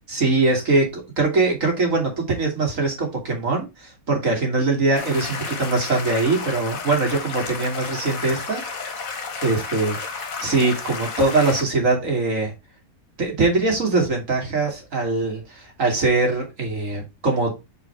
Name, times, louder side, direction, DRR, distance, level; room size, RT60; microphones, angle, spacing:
voice 1, 0.1-8.6 9.4-10.0 10.4-12.5 13.2-17.5, right 3 dB, 60° right, 1 dB, 2.9 m, -22 dB
sound 1, 5.0-11.6, left 4 dB, 70° left, 1.7 m, -32 dB
5.1 x 5.0 x 4.6 m, 0.25 s
omnidirectional pair, 1.5 m